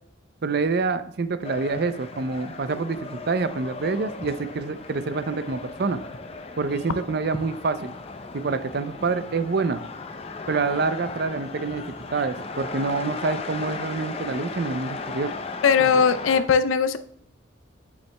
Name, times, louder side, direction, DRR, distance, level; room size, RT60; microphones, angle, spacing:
voice 1, 0.4-6.0 6.6-7.9 8.3-9.8 10.5-11.8 12.1-15.3 15.8-15.9, right 4 dB, 55° right, 11 dB, 0.5 m, -27 dB
sound 1, 1.4-16.4, left 3 dB, 30° left, 0.5 m, -36 dB
voice 2, 15.6-17.0, left 6 dB, 85° left, 11 dB, 0.5 m, -19 dB
9.4 x 7.1 x 2.2 m, 0.68 s
head